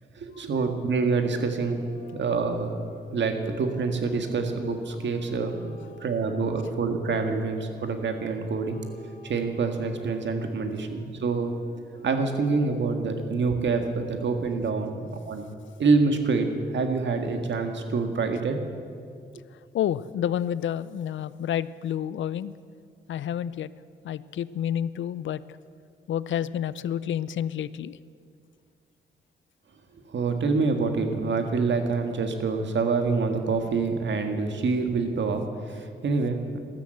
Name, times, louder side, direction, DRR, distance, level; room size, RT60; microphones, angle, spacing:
voice 1, 0.2-1.9 2.1-2.8 3.1-5.7 6.0-8.8 9.2-11.5 12.0-15.5 15.8-16.5 16.7-18.6 30.1-36.6, right 4 dB, 70° right, 6 dB, 1.8 m, -26 dB
sound 1, 1.6-7.3 8.0-13.5, right 1 dB, 45° left, 5.0 m, -49 dB
voice 2, 19.7-22.5 23.1-23.7 24.0-25.4 26.1-28.0, left 10 dB, 80° left, 17 dB, 0.5 m, -29 dB
13.5 x 12.5 x 7.8 m, 2.2 s
cardioid pair, 65°, 19 cm